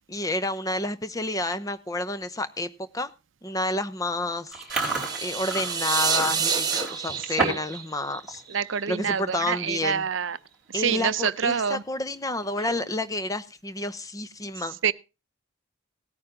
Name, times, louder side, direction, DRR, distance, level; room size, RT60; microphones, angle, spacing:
voice 1, 0.0-3.1 3.4-4.6 5.2-8.4 8.9-10.0 10.7-14.8, left 2 dB, 15° left, 0.7 m, -30 dB
Chewing mastication, 4.5-7.8 8.1-8.4 8.8-9.1 9.8-9.9 10.1-10.5 10.9-11.0 12.4-13.0, right 3 dB, ahead, 4.7 m, -31 dB
sound 1, 4.7-8.8, right 6 dB, 20° right, 1.4 m, -28 dB
voice 2, 7.2-7.6 8.5-10.4 10.7-11.8 14.8-14.9, right 7 dB, 60° right, 0.6 m, -27 dB
17.0 x 9.3 x 3.7 m
head